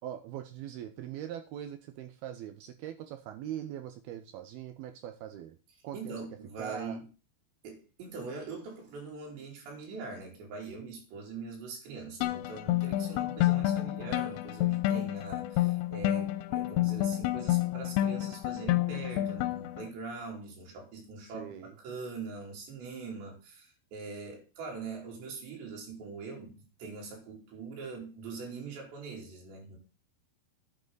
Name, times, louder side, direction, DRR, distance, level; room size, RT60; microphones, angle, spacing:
voice 1, 0.0-5.6 5.8-6.2 6.6-7.0 21.3-21.7, right 10 dB, 75° right, 2.6 m, -41 dB
voice 2, 5.9-7.1 7.6-29.8, right 4 dB, 90° right, 5.6 m, -42 dB
sound 1, 12.2-19.9, left 14 dB, 85° left, 2.9 m, -29 dB
10.0 x 9.1 x 4.0 m
omnidirectional pair, 4.9 m